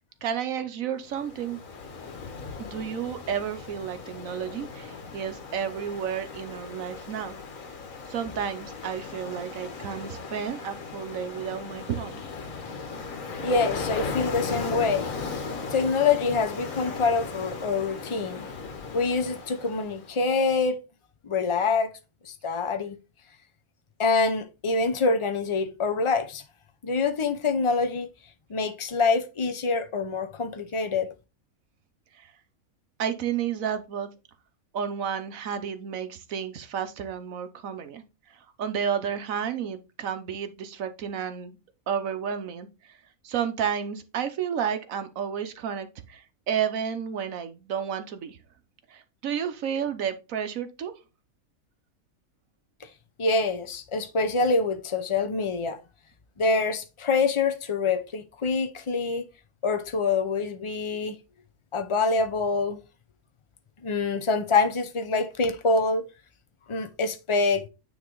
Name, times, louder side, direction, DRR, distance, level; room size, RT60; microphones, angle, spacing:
voice 1, 0.2-1.6 2.6-7.4 8.1-12.2 32.1-32.3 33.0-34.1 34.7-41.6 41.9-43.0 43.2-48.4 48.9-50.9, right 8 dB, 75° right, 1.2 m, -31 dB
Ocean, 1.1-20.2, left 4 dB, 70° left, 1.6 m, -37 dB
voice 2, 13.4-15.1 15.7-18.5 18.9-20.8 21.3-21.9 22.3-23.0 24.0-26.4 26.8-28.1 28.5-31.1 53.2-55.8 56.4-59.3 59.6-61.2 61.7-62.8 63.8-66.0 66.7-67.6, left 4 dB, 55° left, 0.3 m, -25 dB
9.3 x 3.1 x 3.8 m
omnidirectional pair, 1.5 m